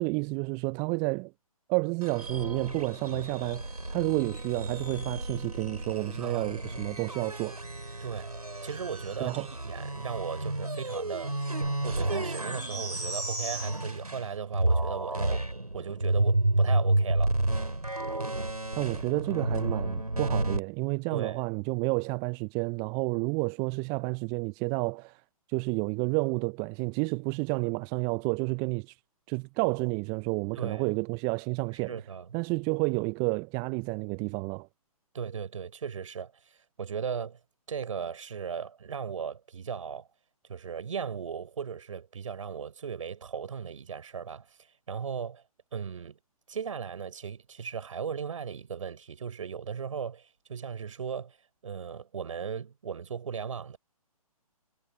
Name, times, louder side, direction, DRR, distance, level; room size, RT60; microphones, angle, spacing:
voice 1, 0.0-1.3 1.7-7.6 9.2-9.5 18.8-25.2 25.5-28.9 29.3-31.9 32.3-34.7, right 33 dB, 20° right, 0.7 m, -30 dB
sound 1, 2.0-14.3 14.5-20.6, right 2 dB, 90° right, 4.5 m, -31 dB
voice 2, 6.2-6.5 8.0-11.4 11.8-15.5 15.7-17.3 21.1-21.4 30.6-30.9 31.7-32.3 35.1-37.4 37.7-40.1 40.5-44.5 44.9-45.4 45.7-46.2 46.5-51.4 51.6-53.8, right 7 dB, 60° right, 5.7 m, -37 dB
figure-of-eight pair, 130°, 19 cm